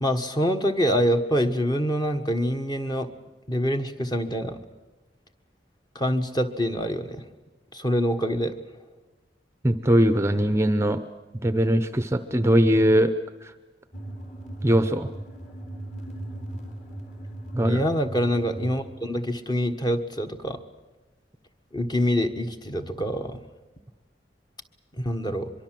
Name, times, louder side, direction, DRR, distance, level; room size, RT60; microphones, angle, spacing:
voice 1, 0.0-3.1 3.5-4.6 5.9-7.2 7.7-8.5 17.6-20.6 21.7-23.4 24.9-25.5, equal, 25° left, 6 dB, 1.5 m, -25 dB
voice 2, 9.6-11.0 11.4-13.1 14.6-15.1 17.5-17.8, equal, 15° right, 10 dB, 0.8 m, -20 dB
sound 1, 13.9-18.9, right 1 dB, 40° left, 4.1 m, -37 dB
24.0 x 23.0 x 7.7 m, 1.1 s
head